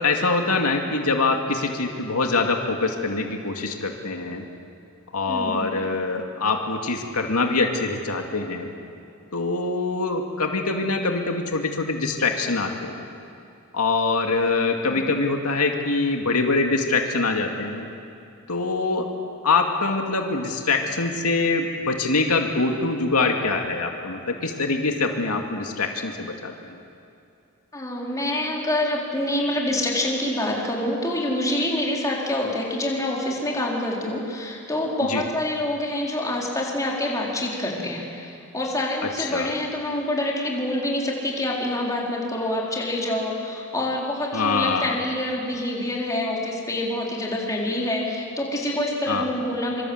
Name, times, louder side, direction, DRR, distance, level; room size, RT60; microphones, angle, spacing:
voice 1, 0.0-4.4 5.1-8.7 9.3-13.1 13.7-17.9 18.5-19.0 19.4-26.5 35.1-35.2 39.3-39.5 44.3-45.0 49.1-49.2, left 3 dB, 85° left, 3 dB, 2.3 m, -24 dB
voice 2, 5.3-5.7 14.8-15.0 27.7-49.9, left 1 dB, 15° left, -3 dB, 4.2 m, -26 dB
26.0 x 25.5 x 8.0 m, 2.6 s
head